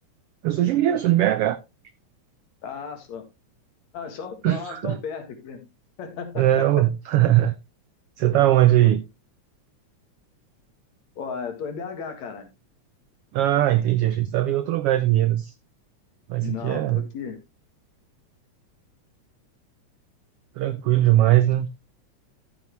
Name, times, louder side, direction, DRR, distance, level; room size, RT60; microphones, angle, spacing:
voice 1, 0.4-1.6 4.4-5.0 6.4-7.6 8.2-9.0 13.3-15.5 16.3-17.0 20.6-21.7, right 13 dB, 85° right, 1.3 m, -20 dB
voice 2, 2.6-3.3 3.9-5.6 6.0-6.7 11.2-12.5 16.4-17.4, left 6 dB, 70° left, 3.0 m, -34 dB
14.0 x 6.7 x 3.1 m
omnidirectional pair, 3.4 m